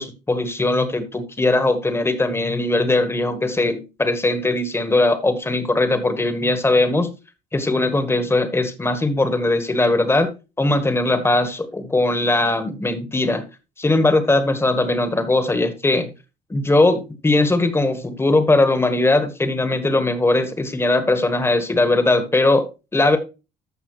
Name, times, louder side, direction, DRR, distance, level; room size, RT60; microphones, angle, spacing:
voice 1, 0.0-7.1 7.5-10.3 10.6-13.4 13.8-16.1 16.5-22.7 22.9-23.2, left 2 dB, 15° left, 10 dB, 1.4 m, -19 dB
14.0 x 5.5 x 3.1 m, 0.29 s
cardioid pair, 110°, 17 cm